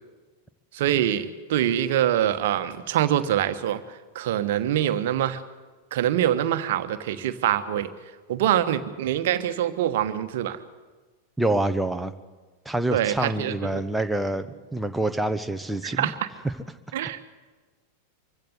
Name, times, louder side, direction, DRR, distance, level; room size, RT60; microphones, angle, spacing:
voice 1, 0.7-5.4 5.9-7.9 8.3-10.6 12.9-13.8 15.8-16.3 16.9-17.3, right 11 dB, 55° right, 11 dB, 1.3 m, -25 dB
voice 2, 11.4-12.1 12.6-16.1, right 1 dB, 5° right, 8 dB, 1.1 m, -26 dB
24.5 x 16.0 x 8.2 m, 1.3 s
figure-of-eight pair, 90°, 0 cm